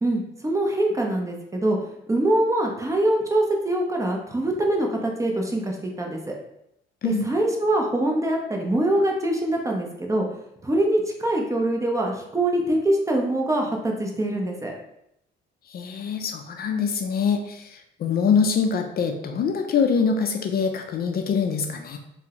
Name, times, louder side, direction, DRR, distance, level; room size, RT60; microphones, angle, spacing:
voice 1, 0.0-1.8 2.1-6.3 7.0-10.3 10.6-14.8, right 1 dB, 15° right, 1 dB, 0.5 m, -24 dB
voice 2, 15.7-22.0, left 6 dB, 50° left, 5 dB, 0.4 m, -24 dB
3.4 x 2.0 x 2.8 m, 0.79 s
cardioid pair, 90°, 20 cm